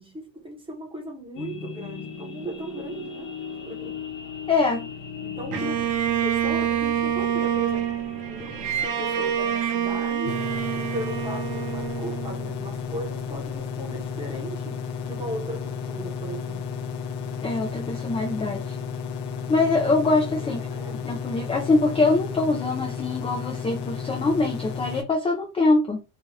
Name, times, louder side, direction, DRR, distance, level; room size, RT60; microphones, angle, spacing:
voice 1, 0.0-3.4 3.6-4.0 5.2-8.0 8.3-10.4 10.8-16.7 20.4-21.1, right 1 dB, 15° right, 0.8 m, -37 dB
sound 1, 1.4-8.8, left 5 dB, 75° left, 1.0 m, -38 dB
voice 2, 4.5-4.9 17.4-18.8 19.5-20.6 21.0-26.0, left 3 dB, 15° left, 0.3 m, -23 dB
Bowed string instrument, 5.5-12.8, right 9 dB, 80° right, 0.7 m, -27 dB
sound 2, 10.3-25.0, left 6 dB, 60° left, 0.6 m, -33 dB
2.9 x 2.3 x 3.1 m
cardioid pair, 165°, 43 cm